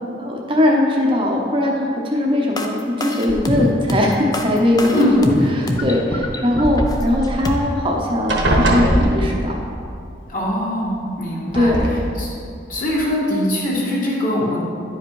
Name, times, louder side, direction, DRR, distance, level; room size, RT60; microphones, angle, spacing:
voice 1, 0.2-9.6 11.5-12.1, left 1 dB, 25° right, -1 dB, 0.8 m, -20 dB
sound 1, 2.6-7.6, left 1 dB, 20° left, 0.5 m, -23 dB
sound 2, 3.3-3.9 4.7-5.5 7.3-7.4 7.7-8.0 8.3-9.7 10.9-11.0 11.5-11.9, right 1 dB, 80° right, 1.3 m, -21 dB
voice 2, 4.9-5.2 10.3-11.7 12.2-12.3 12.7-14.6, left 1 dB, 45° left, -6 dB, 2.0 m, -21 dB
10.5 x 5.0 x 4.7 m, 2.4 s
head